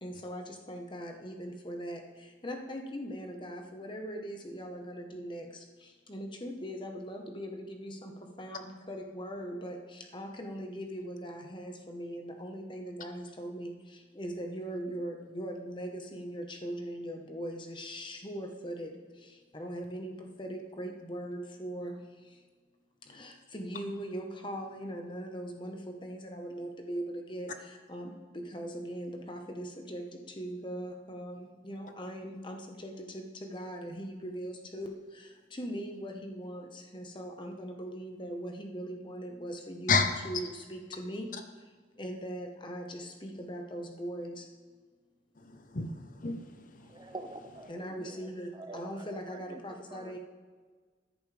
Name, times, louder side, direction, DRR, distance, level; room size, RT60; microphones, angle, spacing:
voice 1, 0.0-22.4 23.1-41.3 42.0-44.5 47.7-50.2, equal, 25° left, 3 dB, 1.1 m, -40 dB
voice 2, 45.4-47.1, left 4 dB, 45° left, 7 dB, 0.8 m, -31 dB
voice 3, 46.8-50.2, right 2 dB, 20° right, 7 dB, 0.5 m, -47 dB
13.5 x 10.5 x 3.3 m, 1.5 s
head